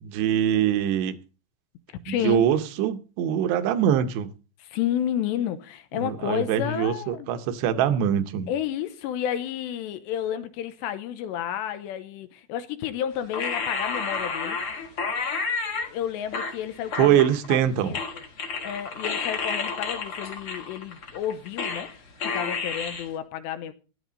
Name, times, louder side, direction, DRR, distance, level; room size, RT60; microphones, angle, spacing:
voice 1, 0.0-1.1 2.1-4.3 5.9-8.5 17.0-18.0, right 10 dB, 75° right, 2.7 m, -23 dB
voice 2, 2.1-2.4 4.6-7.3 8.5-14.6 15.9-17.2 17.5-18.2 18.6-21.9 22.2-23.7, left 10 dB, 80° left, 2.7 m, -31 dB
sound 1, 13.3-15.9 16.3-17.7 17.9-21.9 22.2-23.0, left 4 dB, 50° left, 1.7 m, -30 dB
16.0 x 11.0 x 4.1 m
omnidirectional pair, 5.8 m